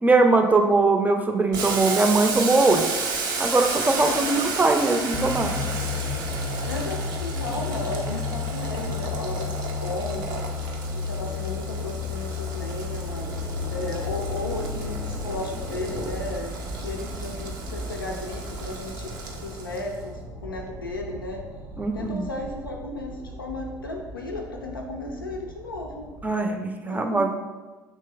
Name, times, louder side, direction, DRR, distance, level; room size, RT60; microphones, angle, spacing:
voice 1, 0.0-2.9 3.4-5.5 21.8-22.3 26.2-27.4, right 3 dB, 15° right, 5 dB, 0.5 m, -21 dB
Boiling, 1.5-20.0, right 4 dB, 65° right, 0.6 m, -33 dB
voice 2, 4.0-4.4 6.7-10.5 10.9-13.3 13.7-21.4 21.9-26.1 26.9-27.2, left 2 dB, 85° left, 1 dB, 0.4 m, -34 dB
sound 1, 5.1-16.4, left 5 dB, 35° left, 0.6 m, -32 dB
sound 2, 9.9-26.3, right 1 dB, 85° right, 1.0 m, -39 dB
6.6 x 3.1 x 2.3 m, 1.3 s
figure-of-eight pair, 60°, 11 cm